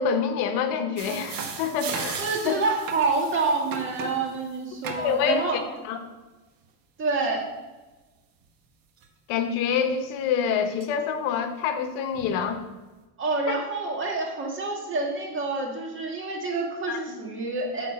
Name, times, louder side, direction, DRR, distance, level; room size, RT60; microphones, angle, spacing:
voice 1, 0.0-2.5 5.0-5.6 5.9-6.0 9.3-12.6 16.9-17.0, left 6 dB, 65° left, 7 dB, 1.1 m, -26 dB
sound 1, 1.0-4.2 4.8-5.3 9.0-9.1 9.9-10.0 10.8-10.9 12.1-12.4, right 5 dB, 45° right, 1.3 m, -36 dB
voice 2, 2.2-5.6 7.0-7.5 13.2-17.9, right 3 dB, 25° right, -1 dB, 1.9 m, -27 dB
9.2 x 4.0 x 6.7 m, 1.2 s
cardioid pair, 135°, 47 cm